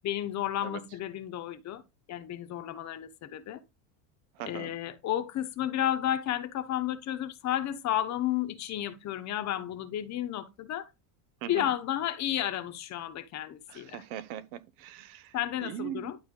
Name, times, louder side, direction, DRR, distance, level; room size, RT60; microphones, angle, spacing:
voice 1, 0.0-1.8 2.1-3.6 4.5-10.9 11.5-14.0 15.3-16.2, left 12 dB, 40° left, 1.2 m, -32 dB
voice 2, 4.3-4.7 11.4-11.7 13.7-16.1, right 11 dB, 80° right, 1.2 m, -40 dB
11.5 x 4.2 x 3.9 m
cardioid pair, 145°, 41 cm